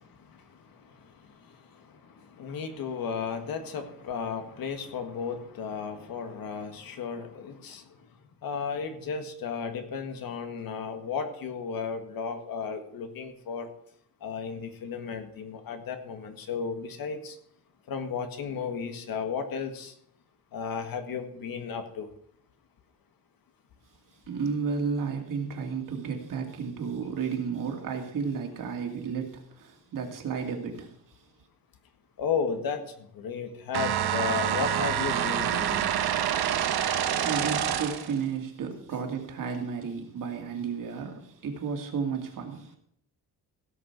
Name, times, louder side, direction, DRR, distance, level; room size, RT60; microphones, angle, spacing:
voice 1, 0.0-8.1 8.4-13.7 14.2-17.4 17.9-19.9 20.5-22.1 32.2-35.9, left 6 dB, 65° left, 1.7 m, -34 dB
voice 2, 24.3-30.9 36.9-42.8, right 6 dB, 55° right, 2.5 m, -33 dB
sound 1, 33.7-38.2, right 9 dB, 80° right, 1.2 m, -27 dB
16.5 x 6.6 x 6.0 m
cardioid pair, 165°, 38 cm